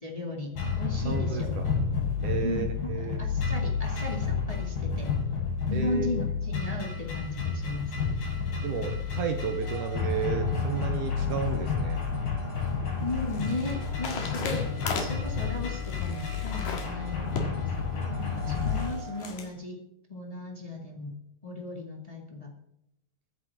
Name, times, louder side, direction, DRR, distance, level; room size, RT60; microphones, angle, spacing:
voice 1, 0.0-1.5 2.4-5.1 5.7-7.9 13.0-14.6 15.0-19.8 20.1-21.1 21.4-22.5, left 2 dB, 20° left, 0 dB, 1.0 m, -36 dB
sound 1, 0.6-18.9, left 5 dB, 80° left, 8.3 m, -30 dB
voice 2, 1.1-1.8 2.2-3.2 5.7-6.1 8.6-12.0, right 7 dB, 70° right, 6 dB, 2.1 m, -32 dB
sound 2, 9.6-19.2, right 5 dB, 30° right, 5.1 m, -48 dB
sound 3, 12.3-19.5, left 4 dB, 65° left, 3.4 m, -38 dB
22.0 x 9.7 x 3.6 m, 0.79 s
omnidirectional pair, 4.5 m